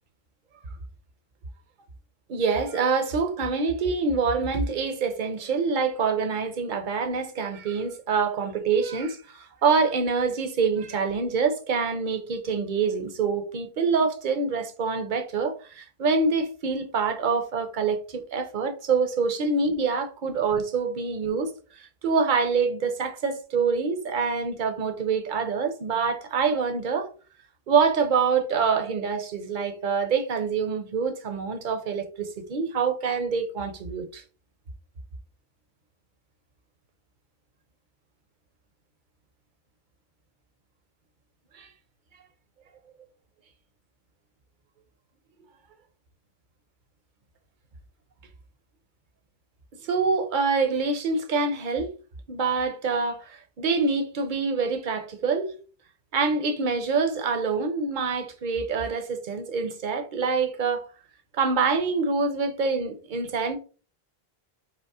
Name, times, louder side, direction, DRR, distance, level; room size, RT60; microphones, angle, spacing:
voice 1, 2.3-21.5 21.8-27.1 27.7-34.2 41.5-41.7 49.8-51.9 52.3-55.5 56.1-60.9 61.4-63.6, right 5 dB, 55° right, 0.9 m, -26 dB
5.2 x 2.1 x 4.7 m
omnidirectional pair, 1.0 m